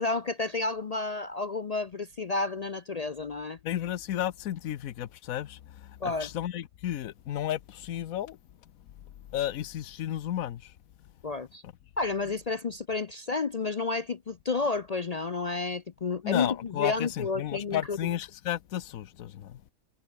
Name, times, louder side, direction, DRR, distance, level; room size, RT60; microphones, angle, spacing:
voice 1, 0.0-3.6 6.0-6.3 11.2-11.6 12.0-18.0, left 3 dB, 50° left, 0.4 m, -31 dB
voice 2, 3.6-8.4 9.3-10.7 11.6-11.7 16.2-19.6, left 12 dB, 75° left, 1.2 m, -33 dB
omnidirectional pair, 1.5 m